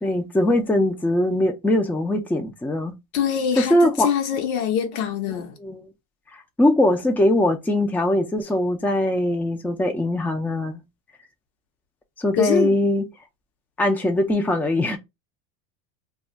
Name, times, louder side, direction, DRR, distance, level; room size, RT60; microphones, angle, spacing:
voice 1, 0.0-2.9 3.6-4.1 5.6-5.9 6.6-10.8 12.2-13.1 13.8-15.0, left 1 dB, 5° left, 0.5 m, -21 dB
voice 2, 3.1-5.6 12.4-12.8, left 8 dB, 85° left, 1.0 m, -24 dB
2.4 x 2.3 x 4.0 m
supercardioid pair, 110°, 41 cm